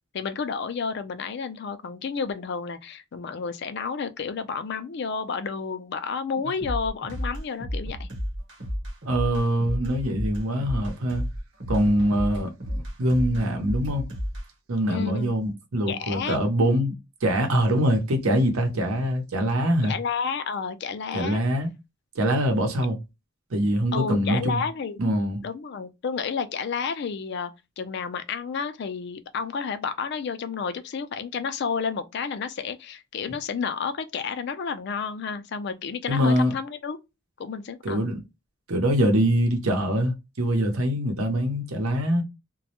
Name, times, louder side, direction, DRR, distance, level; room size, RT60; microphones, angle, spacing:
voice 1, 0.1-8.1 14.9-15.3 15.9-16.4 19.8-21.4 23.9-25.0 25.4-27.5 27.8-37.0 37.4-38.0, left 5 dB, 55° left, 0.4 m, -31 dB
sound 1, 6.6-14.5, equal, 60° right, 0.9 m, -32 dB
voice 2, 9.1-11.3 11.7-14.1 14.7-16.9 17.2-19.9 21.1-21.7 22.2-23.0 23.5-24.6 25.0-25.4 36.1-36.5 37.8-38.2 38.7-42.2, equal, 85° right, 0.8 m, -24 dB
2.2 x 2.0 x 2.8 m
head